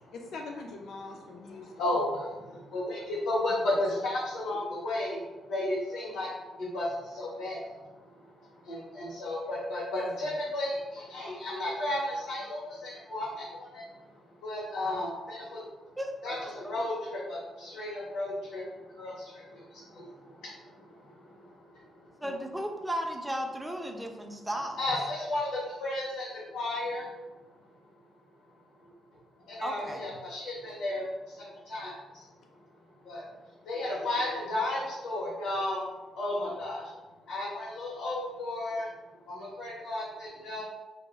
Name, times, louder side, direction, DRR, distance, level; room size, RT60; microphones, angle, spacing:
voice 1, 0.1-1.7 3.6-3.8 10.0-10.4 22.2-22.4, left 3 dB, 70° left, 1 dB, 0.3 m, -43 dB
voice 2, 1.4-5.2 5.5-14.0 14.4-15.6 16.2-22.1 24.8-27.1 28.8-28.9 29.5-32.3 33.0-33.2 33.6-35.9 36.2-36.9 37.3-38.9 39.3-40.6, left 1 dB, 85° left, -7 dB, 0.7 m, -34 dB
voice 3, 16.0-16.7 22.2-24.8 29.6-30.0, equal, 5° right, 3 dB, 0.4 m, -35 dB
2.2 x 2.1 x 3.3 m, 1.2 s
cardioid pair, 90°, 0 cm